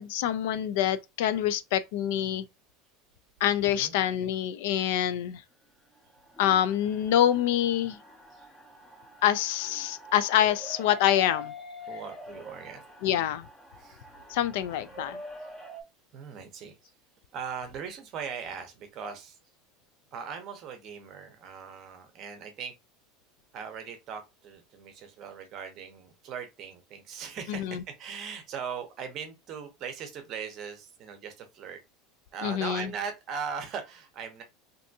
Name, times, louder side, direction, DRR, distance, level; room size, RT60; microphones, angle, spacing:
voice 1, 0.0-2.4 3.4-5.4 6.4-8.0 9.2-11.5 13.0-13.5 14.3-15.2 27.5-27.8 32.4-32.9, left 11 dB, 65° left, 0.3 m, -26 dB
voice 2, 3.6-3.9 8.3-8.5 11.9-13.3 13.8-14.0 16.1-16.9 17.3-19.4 20.1-22.7 23.5-31.8 32.3-34.4, right 6 dB, 30° right, 0.7 m, -39 dB
sound 1, 6.0-15.8, left 1 dB, 5° left, 0.6 m, -46 dB
3.4 x 2.6 x 2.6 m
supercardioid pair, 175°, 0 cm